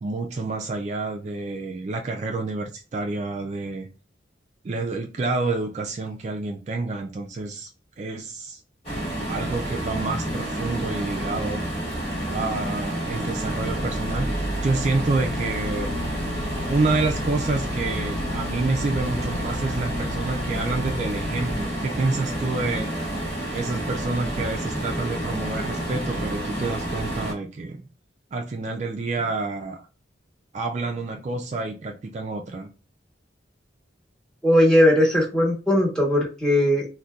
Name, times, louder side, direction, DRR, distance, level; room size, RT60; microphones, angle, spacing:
voice 1, 0.0-3.9 4.6-7.7 8.0-8.6 9.3-11.7 12.3-15.9 16.7-22.9 23.5-27.8 28.3-29.9 30.5-32.7, right 3 dB, 40° right, 3 dB, 0.3 m, -28 dB
sound 1, 8.8-27.3, right 1 dB, 35° left, 1.3 m, -29 dB
sound 2, 11.9-21.7, left 2 dB, 55° left, 0.4 m, -35 dB
voice 2, 34.4-36.9, left 1 dB, 5° left, -2 dB, 1.0 m, -19 dB
3.9 x 2.2 x 2.3 m, 0.33 s
head